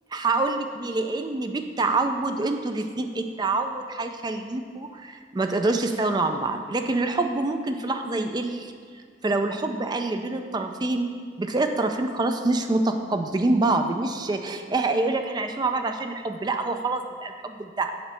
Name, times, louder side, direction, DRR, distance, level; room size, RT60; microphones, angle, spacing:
voice 1, 0.1-8.7 9.2-17.9, right 2 dB, 20° right, 6 dB, 0.4 m, -26 dB
8.0 x 3.2 x 6.2 m, 2.1 s
head